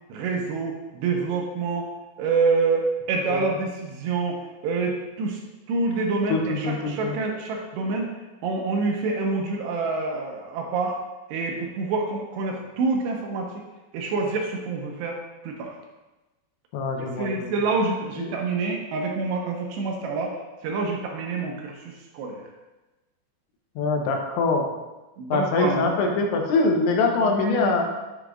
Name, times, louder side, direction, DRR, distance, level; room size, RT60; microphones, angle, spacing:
voice 1, 0.1-1.9 2.2-5.4 5.7-8.1 8.4-11.0 11.3-13.5 13.9-15.2 15.4-15.8 17.0-20.4 20.6-22.4 25.2-25.9 27.1-27.8, right 4 dB, 80° right, 1 dB, 2.9 m, -27 dB
voice 2, 6.3-7.1 16.7-17.5 18.2-18.3 23.8-24.7 25.3-27.8, left 3 dB, 85° left, 2 dB, 3.2 m, -23 dB
8.0 x 7.9 x 2.5 m, 1.1 s
omnidirectional pair, 5.2 m